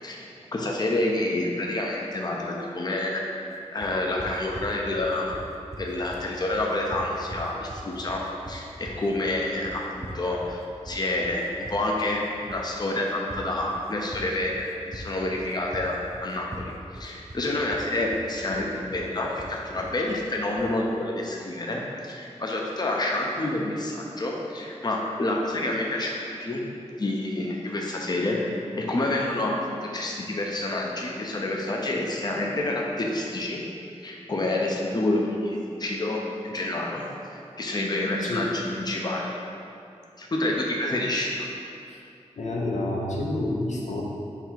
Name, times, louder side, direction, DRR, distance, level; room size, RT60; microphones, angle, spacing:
voice 1, 0.0-3.2 3.7-5.3 5.8-8.2 8.5-11.4 11.7-26.6 27.0-28.4 28.8-33.6 34.0-36.2 36.4-37.0 37.6-39.3 40.2-41.5, left 2 dB, 35° left, -1 dB, 0.5 m, -28 dB
sound 1, 3.8-20.8, right 1 dB, 25° right, 0.4 m, -42 dB
voice 2, 38.2-38.5 41.9-42.0 42.4-44.0, left 1 dB, 85° left, -3 dB, 0.6 m, -29 dB
3.8 x 2.8 x 4.5 m, 2.5 s
wide cardioid pair, 60°, 12 cm